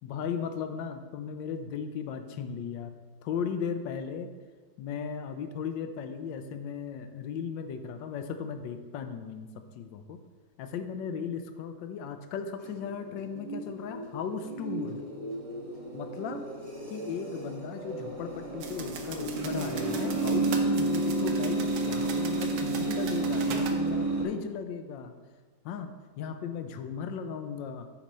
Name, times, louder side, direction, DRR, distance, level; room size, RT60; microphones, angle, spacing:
voice 1, 0.0-2.9 3.2-4.3 4.8-10.2 10.6-15.0 15.9-16.4 16.9-25.2 25.6-27.9, left 6 dB, 80° left, 8 dB, 1.3 m, -36 dB
sound 1, 12.6-24.2, right 2 dB, 30° right, 0.7 m, -31 dB
sound 2, 18.6-23.8, right 6 dB, 65° right, 1.1 m, -41 dB
7.3 x 4.2 x 5.3 m, 1.4 s
omnidirectional pair, 2.0 m